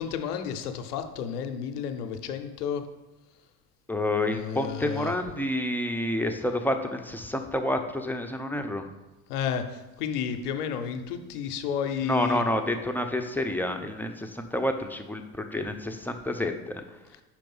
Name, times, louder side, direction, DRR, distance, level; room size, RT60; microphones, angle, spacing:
voice 1, 0.0-2.8 4.3-5.1 9.3-12.4, left 7 dB, 90° left, 7 dB, 0.7 m, -31 dB
voice 2, 3.9-8.9 12.0-16.8, left 1 dB, 5° left, 5 dB, 0.7 m, -29 dB
5.3 x 4.6 x 5.4 m, 1.1 s
hypercardioid pair, 75°, 45 cm